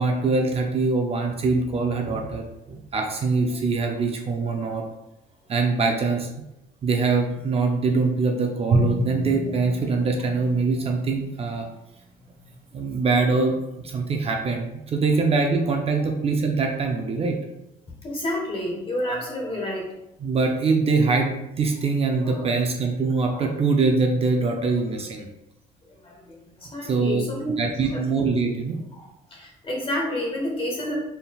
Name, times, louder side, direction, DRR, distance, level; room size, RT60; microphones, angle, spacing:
voice 1, 0.0-4.8 5.5-6.3 6.8-11.7 12.7-13.6 13.8-17.4 20.2-25.3 26.8-27.3 27.6-28.8, right 4 dB, 35° right, 2 dB, 0.5 m, -23 dB
Drum, 8.7-11.7, right 1 dB, 90° right, 1.1 m, -28 dB
voice 2, 18.0-19.9 22.2-22.5 23.3-23.5 25.9-27.5 27.8-28.0 28.9-30.9, left 1 dB, 30° left, -1 dB, 1.3 m, -30 dB
4.1 x 3.6 x 2.3 m, 0.92 s
cardioid pair, 110°, 17 cm